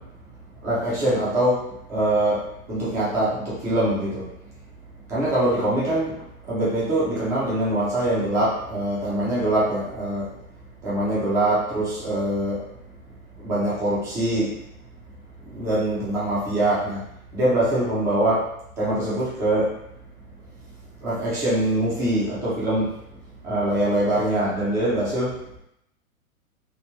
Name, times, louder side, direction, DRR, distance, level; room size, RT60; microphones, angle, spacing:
voice 1, 0.6-1.6 1.9-4.2 5.1-6.2 6.4-10.3 10.8-12.6 13.4-14.5 15.5-17.0 17.3-18.4 18.8-19.7 21.0-22.9 23.4-25.3, right 1 dB, 10° right, -8 dB, 0.3 m, -23 dB
3.0 x 2.2 x 2.2 m, 0.78 s
hypercardioid pair, 110°, 43 cm